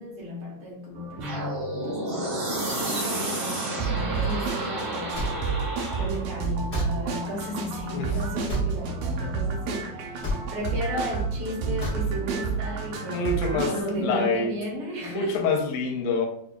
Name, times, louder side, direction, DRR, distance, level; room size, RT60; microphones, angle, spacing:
voice 1, 0.0-15.5, equal, 70° right, 1.3 m, -34 dB
sound 1, 1.0-13.8, right 5 dB, 90° right, 1.4 m, -31 dB
sound 2, 1.2-6.3, right 1 dB, 50° right, 1.9 m, -31 dB
sound 3, 5.1-5.3 6.7-6.9 8.5-8.7 10.2-10.4 11.8-12.0, left 2 dB, 50° left, 0.8 m, -29 dB
voice 2, 13.1-13.7 14.0-14.5 15.0-16.3, left 4 dB, 80° left, 2.0 m, -26 dB
6.0 x 2.4 x 2.2 m
omnidirectional pair, 3.8 m